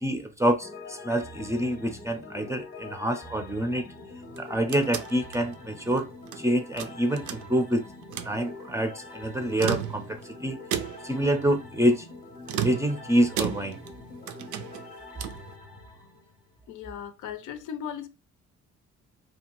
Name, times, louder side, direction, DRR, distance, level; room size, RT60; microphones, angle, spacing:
voice 1, 0.0-3.9 4.4-6.1 6.4-7.8 8.2-10.6 11.0-12.1 12.6-13.8, right 1 dB, 10° right, 0.4 m, -26 dB
sound 1, 0.6-16.7, left 3 dB, 30° left, 0.6 m, -44 dB
sound 2, 4.2-6.4 6.8-7.7 8.0-8.4 9.4-10.3 10.7-11.2 12.5-14.0 14.3-15.5, right 9 dB, 85° right, 0.5 m, -34 dB
voice 2, 16.7-18.1, left 8 dB, 85° left, 0.6 m, -37 dB
2.7 x 2.3 x 2.9 m
cardioid pair, 90°, 30 cm